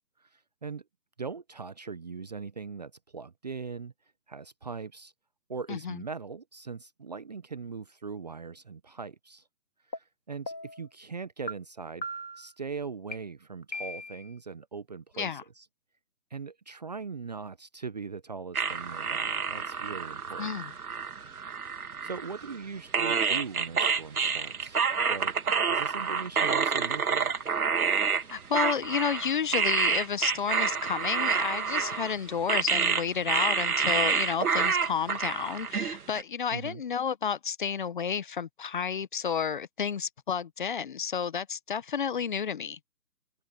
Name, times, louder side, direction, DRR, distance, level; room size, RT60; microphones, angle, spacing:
voice 1, 0.2-0.8 1.2-3.9 4.3-5.1 5.5-9.4 9.9-12.1 12.4-15.7 16.3-20.5 21.7-24.8 25.1-25.4 25.7-27.3 36.5-36.8, right 5 dB, 25° right, 0.8 m, -40 dB
voice 2, 5.7-6.0 15.2-15.4 20.4-20.7 28.3-42.8, left 7 dB, 30° left, 1.2 m, -31 dB
sound 1, 9.9-10.0 10.5-10.8 11.5-11.6 12.0-12.5 13.1-13.2 13.7-14.3, equal, 85° left, 3.2 m, -38 dB
sound 2, 18.5-22.6 22.9-36.2, right 6 dB, 60° right, 2.2 m, -28 dB
figure-of-eight pair, 150°, 50 cm